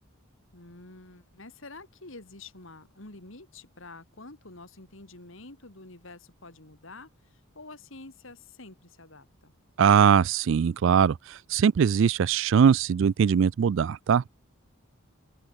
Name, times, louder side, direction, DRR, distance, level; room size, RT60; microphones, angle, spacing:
voice 1, 0.5-9.5, left 2 dB, 65° left, 3.0 m, -48 dB
voice 2, 9.8-14.3, right 7 dB, 60° right, 0.3 m, -21 dB
open air
head